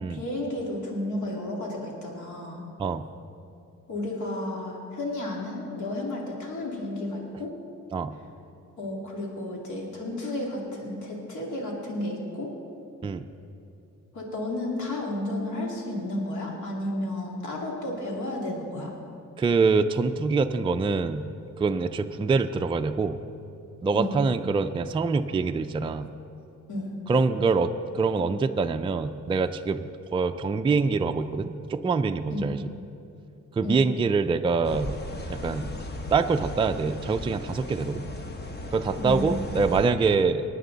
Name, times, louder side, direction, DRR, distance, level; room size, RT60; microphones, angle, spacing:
voice 1, 0.1-2.6 3.9-7.5 8.8-12.5 14.1-18.9 23.9-24.2 26.7-26.9 32.3-32.5 33.6-33.8 39.0-39.8, left 1 dB, 70° left, -1 dB, 2.6 m, -32 dB
voice 2, 19.4-21.3 21.6-23.2 23.8-26.1 27.1-32.6 33.6-34.9 35.3-35.8 36.1-38.1 38.7-40.5, right 4 dB, 15° right, 7 dB, 0.3 m, -25 dB
sound 1, 34.6-39.9, left 1 dB, 35° left, 1.1 m, -36 dB
19.0 x 9.1 x 4.0 m, 2.8 s
cardioid pair, 100°, 31 cm